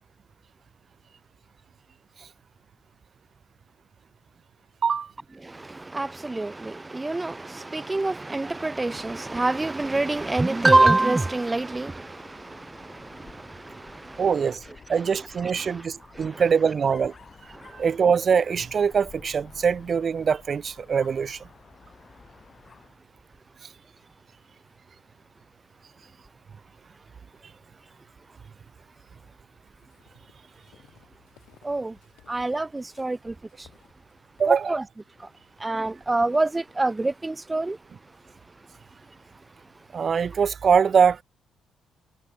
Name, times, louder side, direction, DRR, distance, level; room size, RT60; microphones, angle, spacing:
voice 1, 5.9-7.4 7.7-11.9 31.7-31.9 32.3-33.2 34.5-34.8 35.6-37.8, right 2 dB, 15° right, 0.3 m, -24 dB
Dog, 9.7-23.0, left 5 dB, 40° left, 1.8 m, -52 dB
voice 2, 14.2-14.6 14.9-17.1 17.7-21.4 34.4-34.8 39.9-41.2, right 6 dB, 45° right, 0.7 m, -23 dB
sound 1, 28.9-36.8, left 15 dB, 90° left, 5.4 m, -61 dB
cardioid pair, 90°, 0 cm